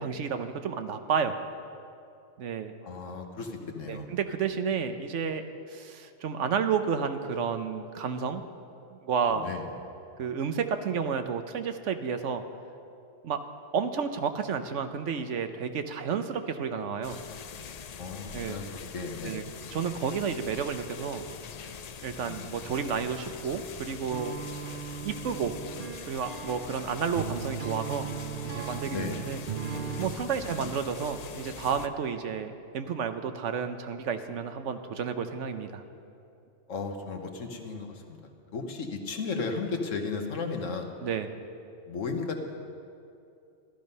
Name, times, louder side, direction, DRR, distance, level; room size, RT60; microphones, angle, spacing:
voice 1, 0.0-1.3 2.4-2.7 3.9-5.4 5.7-8.4 8.9-9.5 10.2-12.4 13.2-13.4 13.7-17.2 18.3-18.6 19.2-19.4 19.7-21.2 22.0-25.6 26.1-28.1 28.4-29.4 30.0-35.8 41.0-41.3, right 6 dB, 75° right, 8 dB, 1.1 m, -31 dB
voice 2, 2.8-4.1 9.3-9.7 18.0-19.4 22.2-22.6 28.8-29.2 30.3-30.7 36.7-38.2 38.5-40.9 41.9-42.4, left 4 dB, 85° left, 4 dB, 1.6 m, -35 dB
sound 1, 17.0-31.9, left 7 dB, 60° left, 0.4 m, -43 dB
sound 2, 24.1-30.2, right 6 dB, 50° right, 0.8 m, -37 dB
14.0 x 12.0 x 5.5 m, 2.6 s
omnidirectional pair, 1.3 m